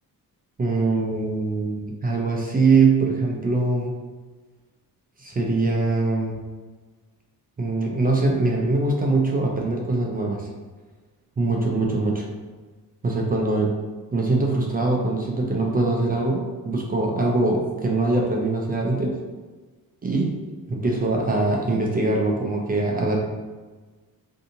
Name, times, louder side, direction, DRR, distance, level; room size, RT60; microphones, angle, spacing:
voice 1, 0.6-4.0 5.2-6.3 7.6-10.5 11.4-12.3 13.0-13.7 14.1-19.2 20.0-20.4 20.7-23.2, right 3 dB, 25° right, -1 dB, 0.4 m, -22 dB
2.6 x 2.6 x 2.6 m, 1.4 s
cardioid pair, 110°, 36 cm